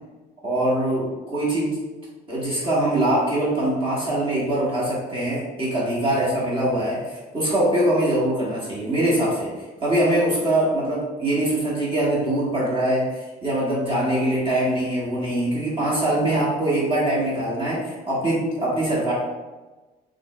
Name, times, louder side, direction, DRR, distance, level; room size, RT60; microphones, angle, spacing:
voice 1, 0.4-1.7 2.3-9.5 9.8-19.1, right 1 dB, 30° right, -7 dB, 1.5 m, -23 dB
5.7 x 3.1 x 2.3 m, 1.2 s
cardioid pair, 110°, 17 cm